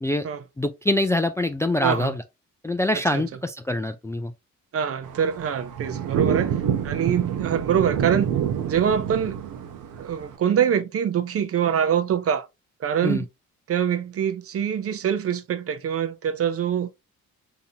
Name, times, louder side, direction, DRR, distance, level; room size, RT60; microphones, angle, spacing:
voice 1, 0.6-2.2 2.6-4.3 13.0-13.2, left 1 dB, 10° left, 0.3 m, -24 dB
voice 2, 1.8-2.1 2.9-3.2 4.7-6.6 6.8-8.3 8.7-9.4 10.0-12.5 12.8-13.3 13.7-16.9, right 8 dB, 50° right, 0.6 m, -24 dB
sound 1, 5.0-10.4, right 9 dB, 85° right, 0.8 m, -27 dB
3.8 x 2.9 x 2.7 m
cardioid pair, 90°, 30 cm